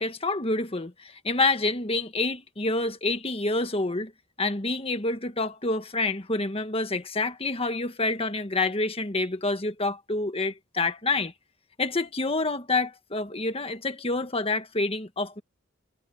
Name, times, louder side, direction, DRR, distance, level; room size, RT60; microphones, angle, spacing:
voice 1, 0.0-4.1 4.4-11.3 11.8-15.4, left 2 dB, 30° left, 1.5 m, -27 dB
head